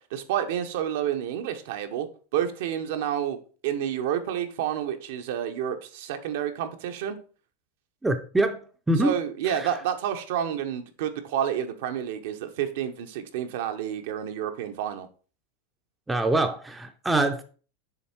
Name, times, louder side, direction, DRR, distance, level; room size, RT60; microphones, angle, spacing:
voice 1, 0.1-3.4 3.6-7.2 9.0-15.1, right 9 dB, 65° right, 1.0 m, -29 dB
voice 2, 8.0-8.6 8.9-9.2 9.5-9.7 16.1-17.4, right 2 dB, 10° right, 0.6 m, -24 dB
7.0 x 3.7 x 4.5 m
supercardioid pair, 145°, 0 cm